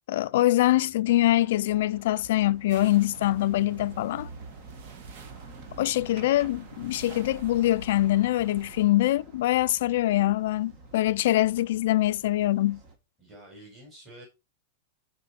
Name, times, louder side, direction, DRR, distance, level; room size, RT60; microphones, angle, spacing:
voice 1, 0.1-4.3 5.8-12.8, left 15 dB, 55° left, 0.5 m, -24 dB
sound 1, 1.1-13.0, right 3 dB, 30° right, 1.6 m, -49 dB
sound 2, 2.7-8.8, right 5 dB, 50° right, 1.5 m, -46 dB
voice 2, 13.2-14.3, right 1 dB, 10° right, 4.7 m, -49 dB
12.5 x 4.5 x 4.2 m
supercardioid pair, 170°, 0 cm